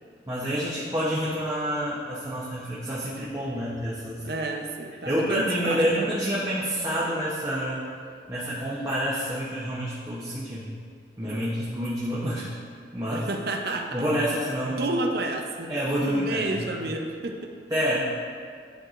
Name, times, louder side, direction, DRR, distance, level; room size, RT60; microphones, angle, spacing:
voice 1, 0.3-4.2 5.0-7.8 8.3-10.7 11.2-12.4 12.9-13.2 13.9-14.9 15.7-16.8 17.7-18.0, equal, 20° right, -8 dB, 0.8 m, -28 dB
voice 2, 4.2-6.1 11.2-11.4 13.1-14.0 14.6-15.7 16.1-17.5, right 2 dB, 60° right, 3 dB, 0.6 m, -30 dB
10.5 x 4.7 x 2.5 m, 2.2 s
head